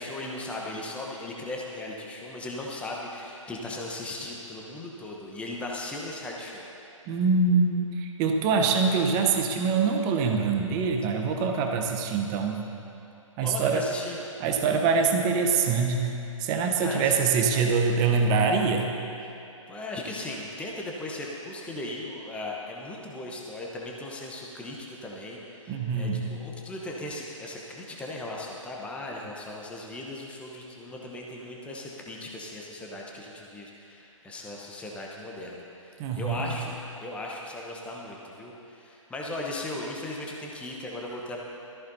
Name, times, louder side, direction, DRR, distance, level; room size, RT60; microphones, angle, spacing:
voice 1, 0.0-6.7 13.4-14.2 16.8-17.2 17.5-17.7 19.7-41.4, left 2 dB, 5° left, -2 dB, 1.0 m, -37 dB
voice 2, 7.1-12.6 13.4-13.8 14.4-18.9 25.7-26.3 36.0-36.5, right 5 dB, 20° right, 3 dB, 0.9 m, -24 dB
17.5 x 14.0 x 2.8 m, 2.8 s
figure-of-eight pair, 130°, 17 cm